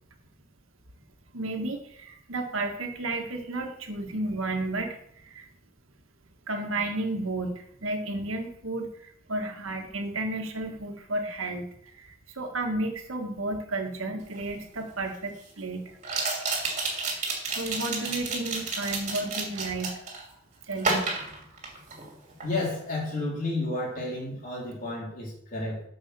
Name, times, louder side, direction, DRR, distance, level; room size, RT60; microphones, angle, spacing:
voice 1, 1.3-5.0 5.2-5.5 6.5-15.8 17.1-20.0 20.7-21.0, right 2 dB, 85° right, 4 dB, 1.6 m, -32 dB
sound 1, 14.3-14.4 16.0-20.2 20.8-22.1 22.4-22.7, right 3 dB, 35° right, 2.6 m, -30 dB
voice 2, 22.4-25.8, left 2 dB, 40° left, -4 dB, 4.1 m, -31 dB
9.6 x 5.6 x 6.8 m, 0.69 s
head